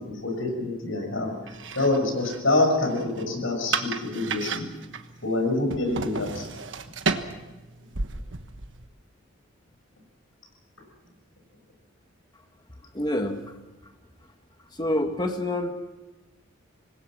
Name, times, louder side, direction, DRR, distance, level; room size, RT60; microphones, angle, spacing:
voice 1, 0.1-4.7 5.2-6.5, left 2 dB, 70° left, 4 dB, 6.3 m, -26 dB
sound 1, 1.5-8.9, right 4 dB, 65° right, 1.4 m, -34 dB
voice 2, 12.9-13.5 14.7-15.7, left 1 dB, 20° left, 5 dB, 1.6 m, -27 dB
26.0 x 20.5 x 6.3 m, 1.1 s
head